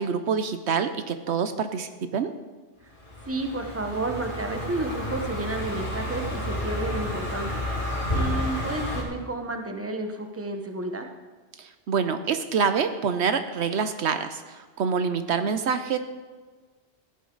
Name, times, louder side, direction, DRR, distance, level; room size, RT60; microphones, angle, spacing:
voice 1, 0.0-2.3 11.6-16.0, right 6 dB, 75° right, 9 dB, 1.0 m, -26 dB
Car passing by, 3.0-9.0, left 1 dB, 50° left, 2.9 m, -30 dB
voice 2, 3.2-7.6 8.1-11.1, right 2 dB, 15° right, 4 dB, 1.1 m, -31 dB
16.0 x 10.5 x 3.9 m, 1.4 s
omnidirectional pair, 1.2 m